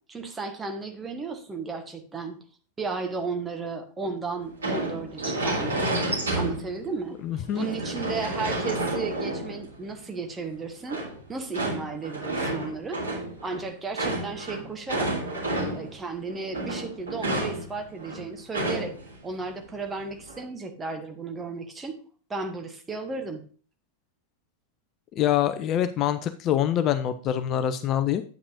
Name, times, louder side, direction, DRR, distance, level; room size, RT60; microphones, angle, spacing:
voice 1, 0.1-2.4 2.8-5.9 6.3-7.2 7.5-11.0 11.3-13.0 13.4-15.2 15.7-18.9 19.2-21.9 22.3-23.4, right 4 dB, 15° right, 5 dB, 1.3 m, -34 dB
sound 1, 4.6-6.9 7.3-9.9 10.9-16.0 16.3-19.1 19.4-19.5 20.0-20.4, right 1 dB, 70° right, 2.9 m, -30 dB
voice 2, 7.2-7.7 25.2-28.2, left 10 dB, 35° left, 10 dB, 0.5 m, -25 dB
9.3 x 8.5 x 2.7 m, 0.41 s
figure-of-eight pair, 90°, 0 cm